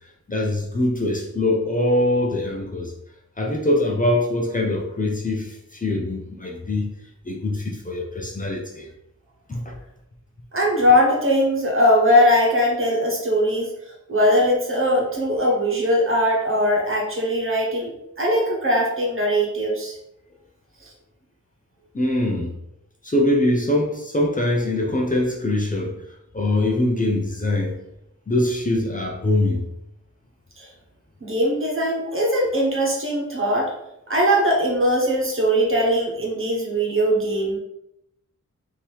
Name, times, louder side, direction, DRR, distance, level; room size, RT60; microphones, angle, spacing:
voice 1, 0.3-2.9 3.4-6.9 7.2-8.9 9.5-9.8 21.9-22.5 23.0-25.9 26.3-27.8 28.3-29.6, left 1 dB, 25° left, -1 dB, 0.7 m, -23 dB
voice 2, 10.5-13.7 14.1-17.9 18.2-20.0 30.6-30.7 31.2-33.7 34.1-37.6, equal, 40° right, -2 dB, 1.3 m, -20 dB
3.6 x 2.9 x 4.6 m, 0.82 s
wide cardioid pair, 115°, 31 cm